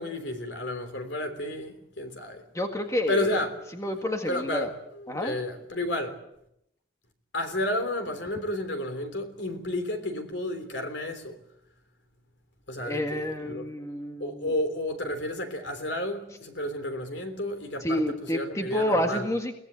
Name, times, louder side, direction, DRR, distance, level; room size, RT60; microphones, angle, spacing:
voice 1, 0.0-2.4 3.1-3.5 4.3-6.1 7.3-11.4 12.7-13.6 14.2-19.3, left 1 dB, 60° left, 3.3 m, -31 dB
voice 2, 2.5-3.4 3.8-4.7 5.1-5.4 12.8-14.5 17.8-19.5, left 1 dB, 15° left, 1.8 m, -29 dB
22.5 x 18.5 x 8.2 m
head